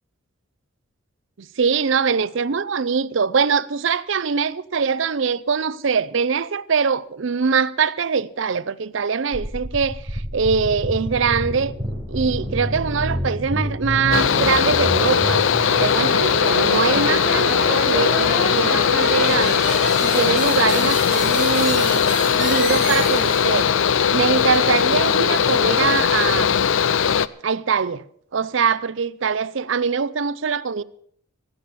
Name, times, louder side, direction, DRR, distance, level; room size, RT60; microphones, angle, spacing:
voice 1, 1.4-11.7 12.1-15.4 15.8-19.7 20.0-22.0 22.3-23.7 24.1-26.7 27.4-28.0 28.3-30.8, right 5 dB, 65° right, 0.5 m, -22 dB
sound 1, 9.3-23.7, right 1 dB, 5° right, 3.9 m, -29 dB
Mechanical fan, 14.1-27.3, left 7 dB, 70° left, 0.5 m, -19 dB
16.5 x 8.4 x 6.9 m
head